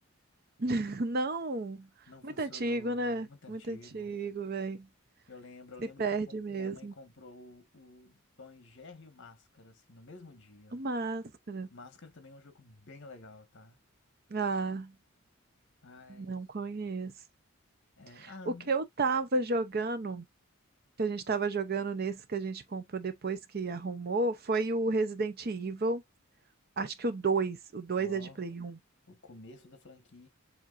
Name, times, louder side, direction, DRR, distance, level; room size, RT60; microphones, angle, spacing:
voice 1, 0.6-1.9 2.2-4.9 6.0-6.9 10.7-11.7 14.3-14.9 16.1-17.1 18.2-20.2 21.0-26.0 26.8-28.8, right 3 dB, 45° right, 0.6 m, -32 dB
voice 2, 2.1-4.1 5.3-10.8 11.7-13.8 15.8-16.4 18.0-18.7 28.0-28.4 29.1-30.3, left 3 dB, 55° left, 1.5 m, -51 dB
7.5 x 2.8 x 2.5 m
head